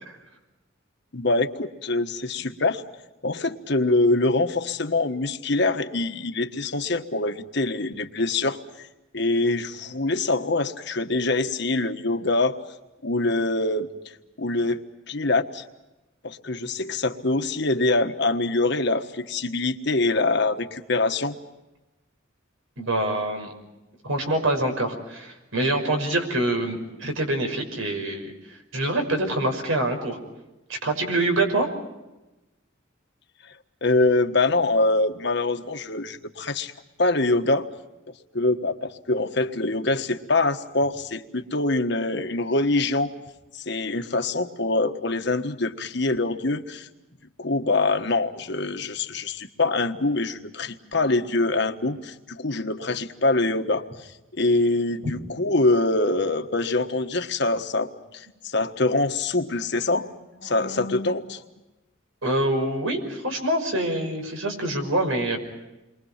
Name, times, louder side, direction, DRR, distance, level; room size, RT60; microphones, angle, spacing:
voice 1, 1.1-2.8 3.2-8.9 9.1-12.6 13.0-13.9 14.4-14.8 15.1-15.6 16.2-21.3 33.8-36.7 37.0-37.7 38.3-43.1 43.5-46.9 47.4-54.1 54.4-61.4, left 2 dB, 60° left, 7 dB, 1.4 m, -24 dB
voice 2, 22.8-23.5 24.0-30.2 30.7-31.7 62.2-65.4, right 1 dB, 90° right, 5 dB, 5.9 m, -25 dB
29.0 x 23.5 x 5.8 m, 1.0 s
head